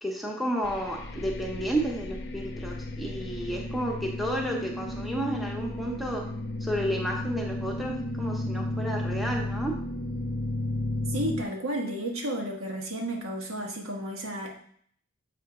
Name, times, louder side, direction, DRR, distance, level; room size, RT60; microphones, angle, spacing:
voice 1, 0.0-6.2 6.6-9.8, right 1 dB, ahead, 0 dB, 0.8 m, -31 dB
sound 1, 0.6-11.4, left 1 dB, 50° left, 0.6 m, -33 dB
voice 2, 11.1-14.5, right 1 dB, 90° right, 0 dB, 1.4 m, -32 dB
6.9 x 3.5 x 4.9 m, 0.62 s
head